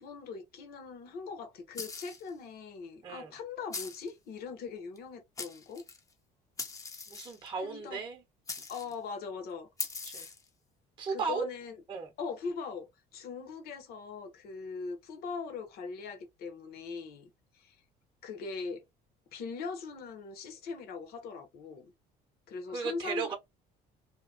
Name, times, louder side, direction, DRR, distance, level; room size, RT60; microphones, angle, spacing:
voice 1, 0.0-5.8 7.6-8.0 8.7-9.7 10.1-10.3 11.1-11.8 12.2-17.8 18.2-18.8 19.3-21.9 22.5-23.3, left 5 dB, 65° left, 1.0 m, -41 dB
sound 1, 1.7-2.3 3.7-4.1 5.0-5.1 5.4-6.0 6.6-7.5 8.5-8.9 9.8-10.5, left 4 dB, 20° left, 0.6 m, -40 dB
voice 2, 7.1-8.2 10.0-10.3 11.0-11.4 11.9-12.1 22.7-23.3, right 5 dB, 25° right, 0.8 m, -35 dB
2.8 x 2.2 x 2.5 m
cardioid pair, 135°, 18 cm